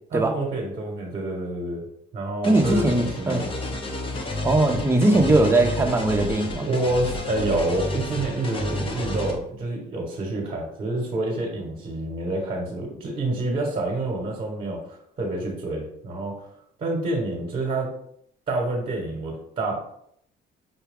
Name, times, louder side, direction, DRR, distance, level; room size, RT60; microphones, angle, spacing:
voice 1, 0.1-1.8 2.1-3.5 6.6-16.5 16.8-17.9 18.5-19.9, right 2 dB, 35° right, -1 dB, 1.2 m, -28 dB
sound 1, 2.4-9.3, left 1 dB, 30° left, 0.8 m, -30 dB
voice 2, 2.4-3.5 4.4-6.7, right 2 dB, 15° right, 3 dB, 0.7 m, -20 dB
5.8 x 2.2 x 3.5 m, 0.69 s
cardioid pair, 110°, 17 cm